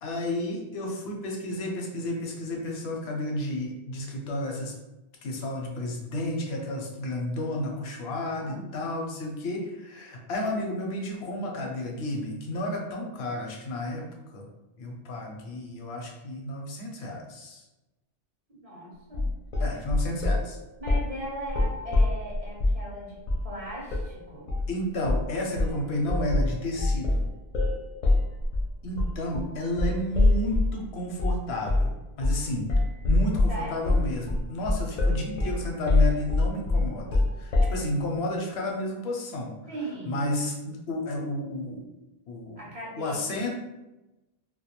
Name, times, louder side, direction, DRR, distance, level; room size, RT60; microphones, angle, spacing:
voice 1, 0.0-4.7 5.2-14.5 14.8-17.6 19.6-20.6 24.7-27.2 28.8-32.7 33.0-39.6 40.0-41.8 42.3-42.6 43.0-43.5, left 1 dB, 85° left, 1 dB, 0.8 m, -32 dB
voice 2, 8.3-8.8 18.5-19.3 20.8-24.5 33.5-34.1 39.7-40.4 42.6-43.5, right 1 dB, 45° right, -5 dB, 0.5 m, -38 dB
sound 1, 19.1-20.5 20.9-21.1 21.5-22.8 23.3-23.5 23.9-24.1 24.5-24.7 25.1-25.3 25.6-30.8 31.2-31.4 31.7-31.9 32.2-32.4 32.7-37.8, left 2 dB, 55° left, 0.5 m, -24 dB
2.2 x 2.2 x 2.9 m, 1.0 s
omnidirectional pair, 1.0 m